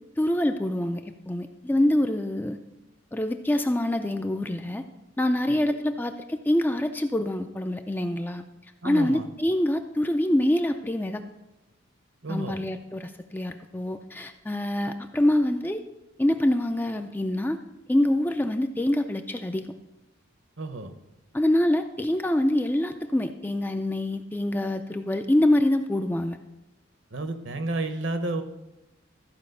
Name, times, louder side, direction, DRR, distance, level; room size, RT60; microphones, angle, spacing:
voice 1, 0.2-2.6 3.1-4.8 5.2-8.4 8.8-11.2 12.3-15.8 16.2-17.6 17.9-19.7 21.3-26.4, left 1 dB, 10° left, 7 dB, 0.3 m, -25 dB
voice 2, 5.5-5.8 8.8-9.3 12.2-12.6 20.6-20.9 27.1-28.4, right 2 dB, 60° right, 9 dB, 0.9 m, -31 dB
13.5 x 5.0 x 6.5 m, 0.98 s
head